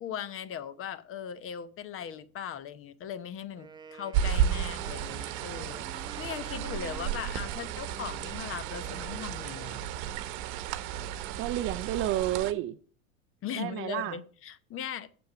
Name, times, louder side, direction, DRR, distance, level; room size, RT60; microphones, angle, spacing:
voice 1, 0.0-9.8 13.4-15.1, left 8 dB, 30° left, 0.8 m, -39 dB
Wind instrument woodwind instrument, 3.6-9.8, right 5 dB, 10° right, 0.9 m, -49 dB
sound 1, 4.1-12.5, right 9 dB, 50° right, 1.1 m, -33 dB
voice 2, 11.4-12.8 13.5-14.2, right 13 dB, 35° right, 0.4 m, -30 dB
7.7 x 7.1 x 6.8 m
hypercardioid pair, 105°, 41 cm